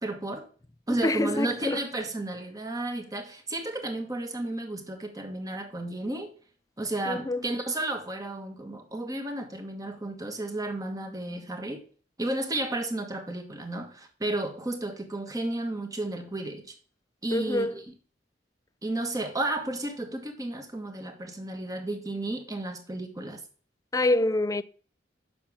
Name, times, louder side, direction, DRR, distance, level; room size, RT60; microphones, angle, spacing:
voice 1, 0.0-0.5 0.9-6.3 6.8-11.8 12.2-16.7 17.2-17.8 18.8-23.4, right 2 dB, 20° right, 1.6 m, -32 dB
voice 2, 1.0-1.8 7.1-7.4 17.3-17.7 23.9-24.6, left 2 dB, 20° left, 0.4 m, -26 dB
7.2 x 6.2 x 7.1 m
head